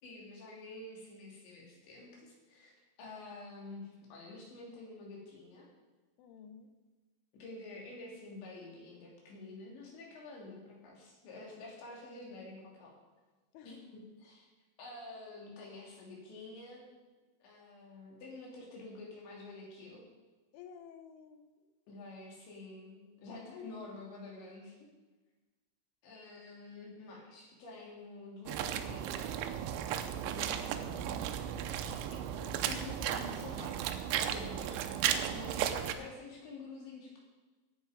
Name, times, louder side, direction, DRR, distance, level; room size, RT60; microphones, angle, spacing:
voice 1, 0.0-5.7 7.3-13.0 13.6-14.5 14.8-16.9 17.4-20.1 21.9-24.9 26.0-29.6 31.9-37.2, left 2 dB, 65° left, -2 dB, 5.2 m, -49 dB
voice 2, 6.2-6.7 13.5-13.7 20.5-21.5 30.2-31.0, left 7 dB, 80° left, 7 dB, 3.4 m, -52 dB
sound 1, 28.5-35.9, right 9 dB, 80° right, 3.0 m, -35 dB
16.0 x 9.1 x 5.1 m, 1.3 s
omnidirectional pair, 5.6 m